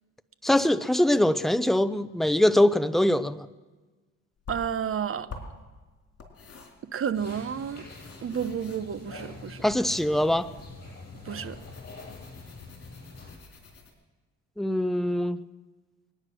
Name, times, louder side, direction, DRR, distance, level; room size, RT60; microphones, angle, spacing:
voice 1, 0.4-3.5 9.6-10.5 14.6-15.4, left 1 dB, ahead, 13 dB, 0.6 m, -23 dB
sound 1, 4.4-13.9, left 4 dB, 50° left, 3.7 m, -48 dB
voice 2, 4.5-5.3 6.9-7.8 8.2-9.6 11.2-11.6, right 8 dB, 45° right, 13 dB, 0.9 m, -31 dB
sound 2, 7.1-13.3, left 3 dB, 35° left, 7.2 m, -45 dB
22.5 x 9.8 x 6.2 m, 1.3 s
cardioid pair, 90°, 30 cm